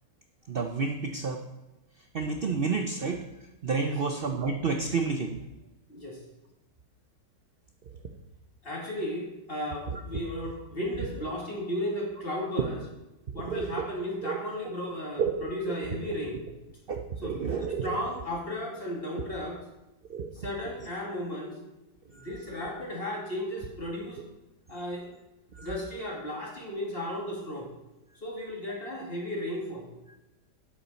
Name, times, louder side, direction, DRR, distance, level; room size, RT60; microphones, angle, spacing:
voice 1, 0.5-1.4 2.1-3.2 3.6-5.4 9.9-10.0 13.3-13.7 14.2-14.4 15.2-15.7 16.9-18.0 20.1-20.3 22.1-22.3 25.6-25.7, right 5 dB, 50° right, 4 dB, 0.6 m, -30 dB
voice 2, 5.9-6.2 8.6-12.8 13.3-16.4 17.2-17.4 17.8-19.6 20.3-21.6 22.1-24.2 24.7-25.1 25.6-27.7 28.2-29.9, left 1 dB, 30° left, -2 dB, 2.7 m, -34 dB
8.9 x 8.2 x 5.6 m, 1.0 s
omnidirectional pair, 1.9 m